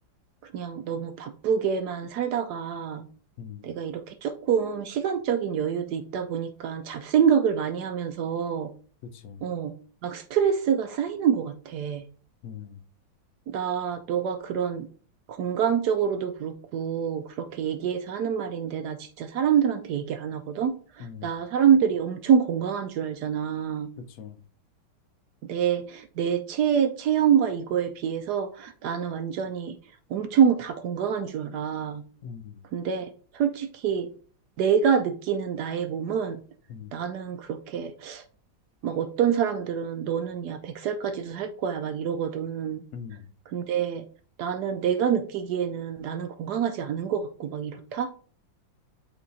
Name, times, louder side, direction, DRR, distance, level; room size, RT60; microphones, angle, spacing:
voice 1, 0.4-3.1 3.6-8.7 9.4-9.7 10.0-12.0 13.5-14.9 15.3-23.9 25.5-29.8 30.1-32.0 32.7-34.1 34.6-36.4 36.9-38.2 38.8-42.8 43.5-44.1 44.4-48.1, right 8 dB, 70° right, 1.0 m, -26 dB
voice 2, 3.4-3.7 9.1-9.4 12.4-12.8 21.0-21.4 24.0-24.4 32.2-32.6 36.7-36.9 42.9-43.3, left 7 dB, 65° left, 0.9 m, -41 dB
7.9 x 3.3 x 3.9 m
omnidirectional pair, 2.1 m